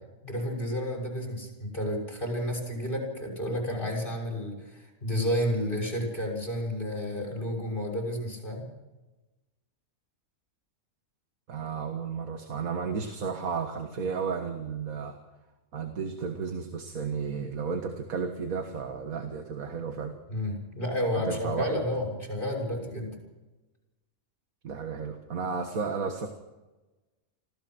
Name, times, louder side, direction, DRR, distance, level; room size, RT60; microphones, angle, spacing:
voice 1, 0.2-8.6 20.3-23.2, equal, 35° left, 1 dB, 6.7 m, -31 dB
voice 2, 11.5-15.2 15.7-20.2 21.2-21.8 24.6-26.3, right 5 dB, 85° right, 5 dB, 2.0 m, -33 dB
26.0 x 16.5 x 6.2 m, 1.1 s
omnidirectional pair, 1.4 m